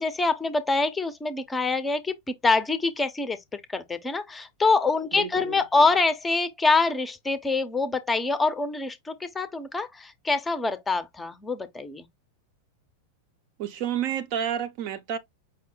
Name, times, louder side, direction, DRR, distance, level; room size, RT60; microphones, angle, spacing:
voice 1, 0.0-12.1, left 3 dB, 10° left, 0.6 m, -25 dB
voice 2, 5.1-5.9 13.6-15.2, right 9 dB, 45° right, 0.6 m, -30 dB
5.3 x 2.1 x 3.8 m
figure-of-eight pair, 90°, 0 cm